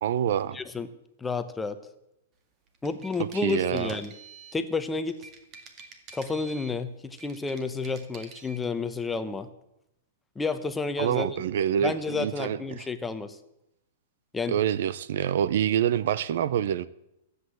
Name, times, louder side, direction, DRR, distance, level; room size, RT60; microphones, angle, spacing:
voice 1, 0.0-0.6 3.2-3.9 11.0-12.8 14.5-16.9, right 9 dB, 65° right, 0.6 m, -26 dB
voice 2, 0.5-0.9 1.2-1.8 2.8-4.1 4.5-5.2 6.1-9.5 10.4-11.4 11.8-13.4 14.3-14.6, left 4 dB, 10° left, 0.9 m, -30 dB
sound 1, 2.7-4.6 5.1-6.8 7.1-8.6, right 5 dB, 30° right, 1.9 m, -48 dB
14.0 x 8.2 x 7.9 m
hypercardioid pair, 145°, 0 cm